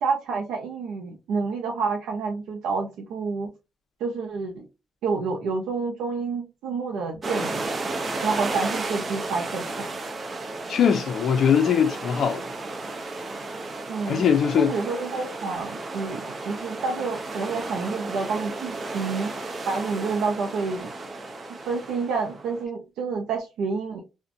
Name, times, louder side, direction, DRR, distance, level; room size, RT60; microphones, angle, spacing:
voice 1, 0.0-3.5 4.0-4.7 5.0-7.7 8.2-9.9 13.9-14.2 14.6-19.3 19.7-20.9 21.7-24.0, right 4 dB, 85° right, 0.5 m, -29 dB
sound 1, 7.2-22.6, right 2 dB, 35° right, 0.5 m, -33 dB
voice 2, 10.7-12.4 14.1-14.8, left 7 dB, 60° left, 0.5 m, -21 dB
2.5 x 2.1 x 2.6 m
cardioid pair, 90°, 0 cm